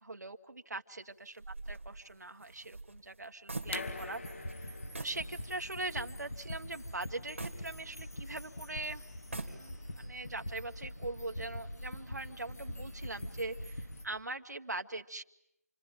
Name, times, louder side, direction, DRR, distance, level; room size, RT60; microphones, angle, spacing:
voice 1, 0.0-4.7 5.0-15.2, right 2 dB, 85° right, 6 dB, 1.6 m, -42 dB
sound 1, 1.4-4.2 4.5-4.6 4.9-5.3 5.7-5.8 7.4-8.4 9.1-10.0, right 2 dB, 45° right, 3.1 m, -44 dB
sound 2, 3.5-14.0, left 1 dB, 70° left, 3.7 m, -44 dB
sound 3, 3.6-9.2, left 3 dB, 45° left, 1.3 m, -47 dB
29.0 x 22.5 x 9.2 m, 0.84 s
figure-of-eight pair, 180°, 9 cm